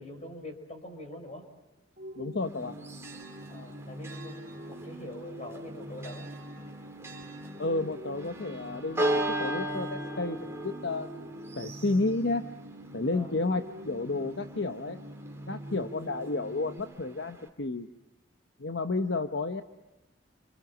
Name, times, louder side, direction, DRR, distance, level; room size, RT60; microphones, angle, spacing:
voice 1, 0.0-1.4 3.5-6.3 13.1-13.3, left 1 dB, 35° left, 5 dB, 5.3 m, -44 dB
sound 1, 2.0-16.8, equal, 50° right, 3.0 m, -44 dB
voice 2, 2.2-2.7 7.6-11.1 11.6-12.4 12.9-15.0 15.5-17.9 18.6-19.6, left 2 dB, 60° left, 7 dB, 1.0 m, -31 dB
Church bell, 2.4-17.5, right 1 dB, 15° right, 2.6 m, -38 dB
28.5 x 27.0 x 7.3 m, 1.0 s
head